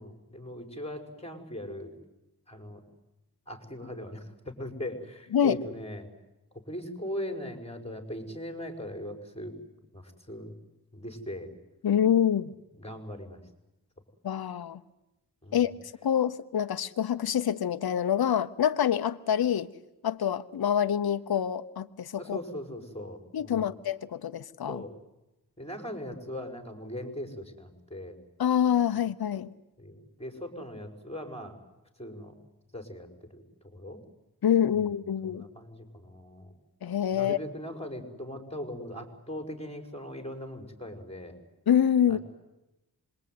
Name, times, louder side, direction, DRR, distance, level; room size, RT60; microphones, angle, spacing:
voice 1, 0.0-1.9 2.5-2.8 3.5-6.1 6.7-9.6 9.9-10.5 10.9-11.5 12.8-13.4 15.4-15.7 22.2-23.7 24.7-25.0 25.6-28.2 29.8-31.6 32.0-32.4 32.7-34.0 34.7-35.0 35.2-36.6 37.1-41.4 42.1-42.2, left 1 dB, 15° left, 6 dB, 5.6 m, -40 dB
voice 2, 11.8-12.5 14.2-14.8 15.5-15.7 16.0-19.7 20.0-22.4 23.3-24.8 28.4-29.5 34.4-35.4 36.8-37.4 41.7-42.2, left 9 dB, 70° left, 10 dB, 1.0 m, -26 dB
26.0 x 22.0 x 9.5 m, 0.97 s
cardioid pair, 55°, 39 cm